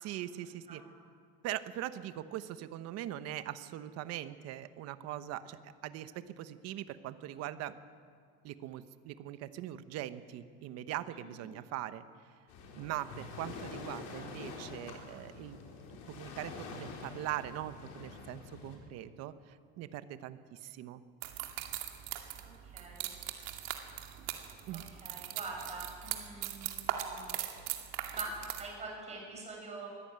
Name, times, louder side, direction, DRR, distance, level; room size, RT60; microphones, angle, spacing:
voice 1, 0.0-0.8 1.4-7.8 8.4-12.0 12.7-15.6 15.9-21.0 24.7-24.8, right 13 dB, 45° right, 12 dB, 1.1 m, -41 dB
Waves surf, 12.5-18.8, left 4 dB, 60° left, 4.9 m, -46 dB
sound 1, 21.2-28.6, right 12 dB, 85° right, 2.5 m, -40 dB
voice 2, 22.6-23.1 24.4-24.5 25.0-27.4 28.1-28.3 28.6-29.9, right 3 dB, 20° right, -1 dB, 7.1 m, -44 dB
23.0 x 15.0 x 8.9 m, 2.1 s
cardioid pair, 165°, 34 cm